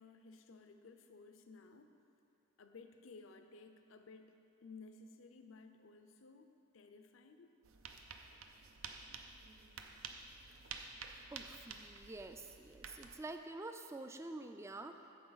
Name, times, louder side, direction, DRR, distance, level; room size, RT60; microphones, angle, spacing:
voice 1, 0.0-2.0 2.6-7.5, left 4 dB, 70° left, 7 dB, 0.5 m, -57 dB
sound 1, 7.6-13.2, right 5 dB, 80° right, 0.5 m, -51 dB
voice 2, 11.3-15.0, right 2 dB, 15° right, 7 dB, 0.3 m, -48 dB
9.3 x 6.9 x 4.0 m, 2.7 s
head